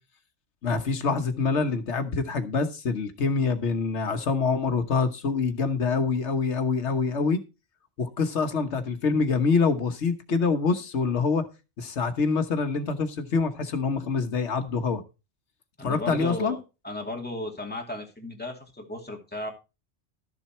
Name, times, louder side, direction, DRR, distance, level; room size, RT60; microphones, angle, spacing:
voice 1, 0.6-7.4 8.0-11.4 11.8-15.0 15.8-16.6, left 4 dB, 85° left, 1.5 m, -25 dB
voice 2, 15.8-16.6 16.8-19.5, left 1 dB, 10° left, 2.4 m, -35 dB
13.0 x 7.3 x 4.4 m
omnidirectional pair, 1.1 m